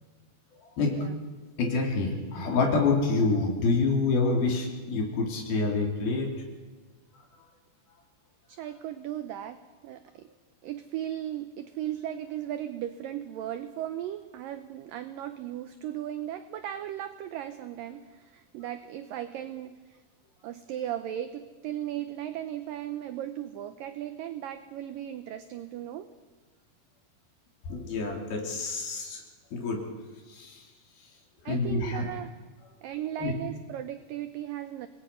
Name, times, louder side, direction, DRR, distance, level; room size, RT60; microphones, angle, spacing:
voice 1, 1.6-6.3 27.7-29.2 29.5-29.9 30.3-30.6 31.4-32.0 33.2-33.3, left 3 dB, 60° left, 1 dB, 4.8 m, -27 dB
voice 2, 8.5-9.6 9.8-10.3 10.6-20.0 20.4-26.1 31.5-32.3 32.8-34.9, right 11 dB, 85° right, 9 dB, 2.0 m, -36 dB
27.0 x 20.0 x 5.6 m, 1.4 s
omnidirectional pair, 4.9 m